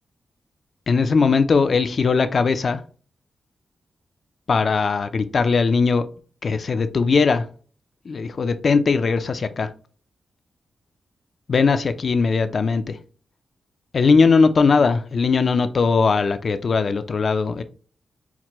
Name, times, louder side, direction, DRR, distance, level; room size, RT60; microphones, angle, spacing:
voice 1, 0.9-2.8 4.5-6.1 6.4-7.5 8.0-9.7 11.5-13.0 13.9-17.6, left 4 dB, 55° left, 0.4 m, -19 dB
5.8 x 2.1 x 3.0 m
cardioid pair, 80°, 0 cm